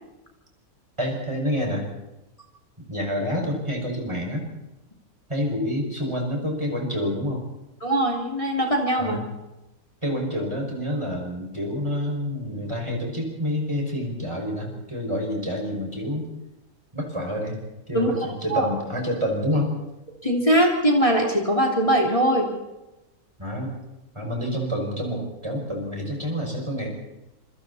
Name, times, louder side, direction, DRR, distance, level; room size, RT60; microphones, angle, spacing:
voice 1, 1.0-1.8 2.9-4.5 5.3-7.4 9.0-9.2 10.0-16.2 16.9-17.6 17.9-19.7 23.4-23.7 24.1-26.9, equal, 20° right, 0 dB, 6.0 m, -28 dB
voice 2, 7.8-9.2 17.9-18.7 20.2-22.5, right 1 dB, 20° left, 0 dB, 3.2 m, -21 dB
27.0 x 24.5 x 4.2 m, 0.97 s
omnidirectional pair, 1.5 m